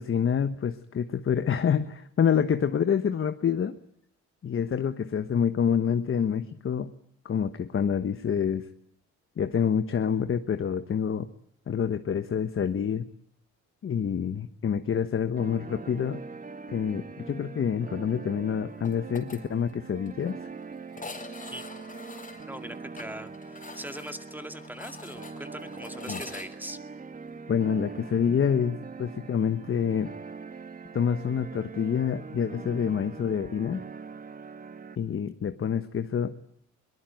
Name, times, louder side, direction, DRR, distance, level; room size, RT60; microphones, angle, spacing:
voice 1, 0.0-3.8 4.4-6.9 7.2-8.7 9.4-11.3 11.7-13.0 13.8-16.2 16.7-20.4 26.1-26.2 27.5-30.1 30.9-33.8 35.0-36.4, left 7 dB, 45° left, 10 dB, 1.3 m, -27 dB
sound 1, 15.4-35.0, right 4 dB, 30° right, 1.5 m, -42 dB
sound 2, 18.8-19.4 19.7-19.8 20.1-20.2 20.9-26.5, left 3 dB, 25° left, 4.3 m, -44 dB
voice 2, 22.5-26.8, right 1 dB, 5° right, 8 dB, 2.1 m, -41 dB
22.5 x 19.5 x 9.2 m, 0.66 s
cardioid pair, 90°, 30 cm